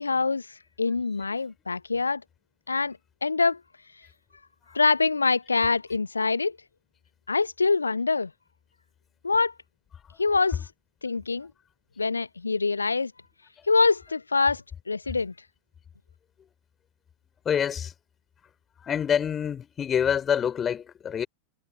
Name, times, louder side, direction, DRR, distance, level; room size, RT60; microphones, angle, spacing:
voice 1, 0.0-2.2 2.7-3.6 4.7-6.6 7.3-8.3 9.2-9.5 10.2-10.7 11.0-11.5 12.0-13.1 13.7-15.3, left 4 dB, 80° left, 0.7 m, -25 dB
voice 2, 17.5-17.9 18.9-21.3, left 8 dB, 25° left, 3.4 m, -26 dB
figure-of-eight pair, 90°, 0 cm